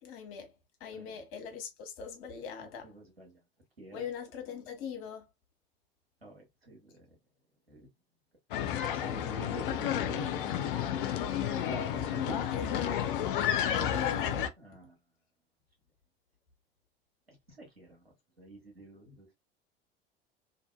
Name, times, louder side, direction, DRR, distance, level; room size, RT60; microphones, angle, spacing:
voice 1, 0.0-0.5 0.8-2.9 3.9-5.3 11.3-12.1 12.5-13.0 13.7-14.5, left 7 dB, 45° left, 1.0 m, -41 dB
voice 2, 2.6-3.4 3.8-4.0 6.2-7.0 7.7-7.9 8.6-13.1 14.6-14.9 17.3-18.0 18.4-19.3, right 1 dB, 85° right, 1.2 m, -47 dB
sound 1, 8.5-14.5, left 10 dB, 60° left, 0.5 m, -31 dB
2.7 x 2.5 x 2.2 m
figure-of-eight pair, 75°, 30 cm